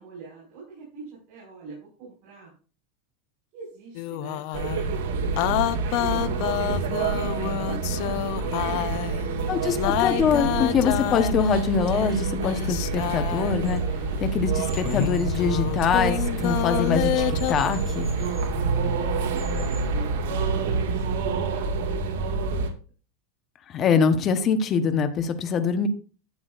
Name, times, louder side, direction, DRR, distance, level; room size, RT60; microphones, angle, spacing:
voice 1, 0.0-2.5 3.5-10.4 14.1-14.6 18.3-19.0 19.3-22.1, right 4 dB, 45° right, -4 dB, 5.4 m, -44 dB
sound 1, 3.9-4.9 5.4-9.3 9.8-13.7 14.7-17.5, left 16 dB, 50° left, 0.5 m, -28 dB
sound 2, 4.5-22.7, right 4 dB, 75° right, 2.0 m, -27 dB
voice 2, 9.5-13.8 14.2-18.1 23.7-25.9, left 6 dB, 30° left, 9 dB, 1.1 m, -24 dB
sound 3, 13.0-20.8, equal, ahead, 2.6 m, -46 dB
11.5 x 8.6 x 2.6 m, 0.38 s
supercardioid pair, 155°, 0 cm